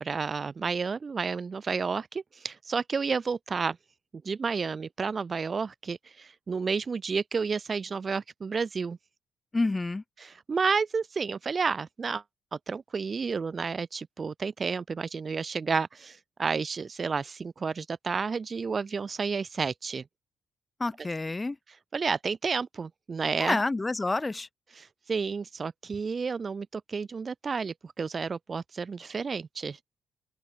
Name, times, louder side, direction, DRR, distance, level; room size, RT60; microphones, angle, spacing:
voice 1, 0.0-3.8 4.2-9.0 10.2-12.2 12.7-20.0 21.9-23.6 24.8-29.8, right 5 dB, 35° right, 0.5 m, -31 dB
voice 2, 9.5-10.0 20.8-21.6 23.4-24.5, left 2 dB, 20° left, 0.6 m, -28 dB
open air
cardioid pair, 90°, 0 cm